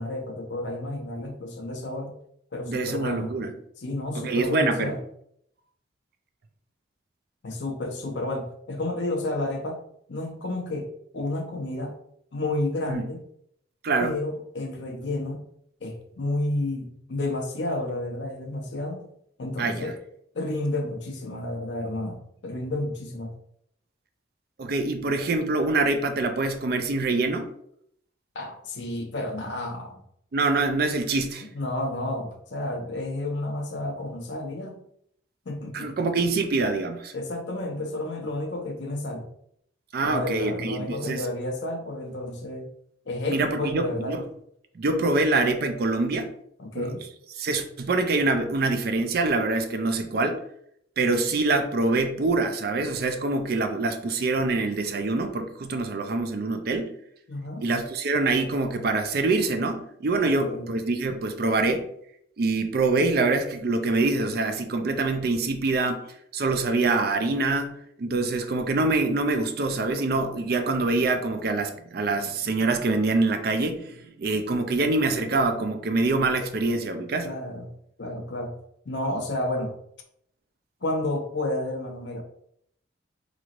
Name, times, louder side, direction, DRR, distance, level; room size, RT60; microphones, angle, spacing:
voice 1, 0.0-2.2 2.5-3.3 3.8-5.0 7.4-9.8 10.1-12.0 12.3-13.2 14.0-15.4 15.8-19.0 19.4-20.0 20.3-23.4 28.3-30.0 31.5-34.8 35.5-36.1 37.1-39.2 40.0-42.7 43.1-44.2 46.6-47.1 57.3-57.7 60.2-60.7 77.2-77.7 78.0-78.6 78.8-79.7 80.8-82.2, left 1 dB, 65° left, 3 dB, 0.6 m, -31 dB
voice 2, 2.7-3.5 4.1-5.0 12.9-13.1 13.8-14.1 19.6-19.9 24.6-27.5 30.3-31.5 35.7-37.1 39.9-41.3 43.3-44.3 44.7-46.3 46.7-46.9 47.4-50.4 51.0-56.9 57.6-61.9 62.4-66.1 66.3-77.3, right 3 dB, 55° right, 7 dB, 0.4 m, -25 dB
4.0 x 3.1 x 2.4 m, 0.72 s
head